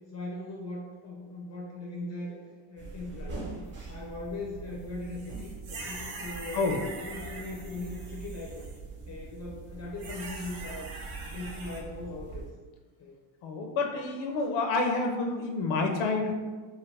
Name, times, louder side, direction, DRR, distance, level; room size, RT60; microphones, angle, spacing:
voice 1, 0.1-3.4 3.9-6.7 7.0-8.7 9.1-10.9 11.3-12.5 13.0-13.2, left 2 dB, 35° left, -3 dB, 0.4 m, -39 dB
sound 1, 2.8-12.5, right 3 dB, 25° right, 0.7 m, -43 dB
sound 2, 5.1-8.8 10.0-11.8, right 3 dB, 90° right, 0.8 m, -43 dB
voice 2, 13.4-16.3, left 3 dB, 90° left, 3 dB, 0.6 m, -28 dB
2.9 x 2.4 x 3.1 m, 1.4 s
cardioid pair, 150°, 47 cm